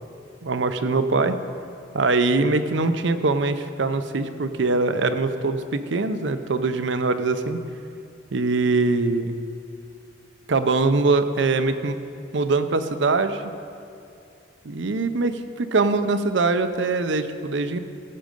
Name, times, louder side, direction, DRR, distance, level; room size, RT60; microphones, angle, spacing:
voice 1, 0.4-1.4 1.9-7.6 8.3-9.3 10.5-12.0 12.3-13.5 14.6-17.8, right 3 dB, 75° right, 10 dB, 0.6 m, -22 dB
15.5 x 7.5 x 5.3 m, 2.5 s
head